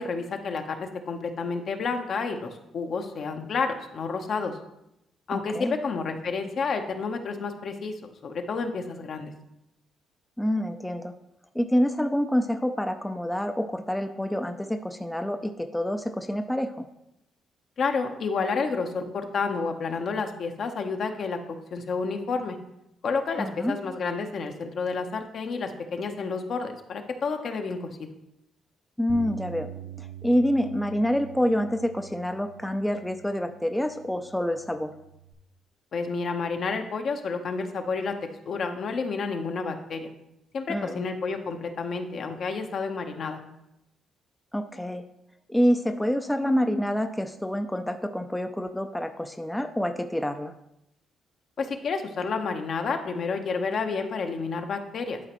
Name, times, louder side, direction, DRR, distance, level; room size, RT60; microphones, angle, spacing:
voice 1, 0.0-4.6 5.3-9.3 17.8-21.4 21.7-22.6 23.0-27.9 35.9-38.2 38.5-40.1 40.5-43.4 51.6-55.2, left 4 dB, 60° left, 5 dB, 0.8 m, -30 dB
voice 2, 5.3-5.8 10.4-11.1 11.5-16.9 23.4-23.8 29.0-29.7 30.0-34.9 40.7-41.0 44.5-45.0 45.5-50.5, equal, 5° left, 6 dB, 0.4 m, -27 dB
Bass guitar, 29.1-35.3, right 9 dB, 55° right, 0.6 m, -44 dB
11.5 x 3.9 x 3.0 m, 0.85 s
cardioid pair, 90°, 0 cm